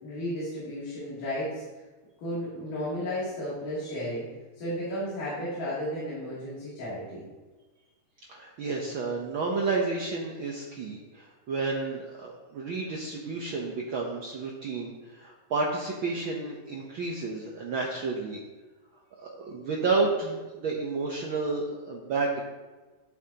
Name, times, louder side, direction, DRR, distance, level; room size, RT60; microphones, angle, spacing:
voice 1, 0.0-1.6 2.2-4.3 4.6-7.3, equal, 85° left, -10 dB, 4.4 m, -33 dB
voice 2, 8.3-18.4 19.2-22.4, right 3 dB, 90° right, -2 dB, 1.1 m, -31 dB
11.5 x 8.4 x 2.9 m, 1.2 s
omnidirectional pair, 3.6 m